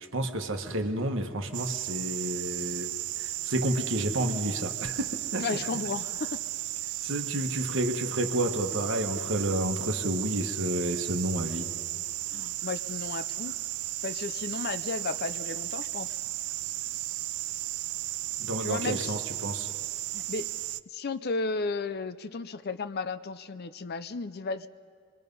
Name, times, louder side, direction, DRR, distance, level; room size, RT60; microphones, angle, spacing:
voice 1, 0.0-5.7 7.0-11.7 18.4-19.7, right 1 dB, 55° right, 5 dB, 1.4 m, -30 dB
sound 1, 1.5-20.8, right 16 dB, 80° right, 0.5 m, -35 dB
voice 2, 5.4-6.4 12.3-13.6 14.0-16.2 18.6-19.2 20.1-20.5 20.9-24.7, left 4 dB, 45° left, 12 dB, 0.5 m, -34 dB
26.5 x 22.5 x 5.4 m, 2.1 s
head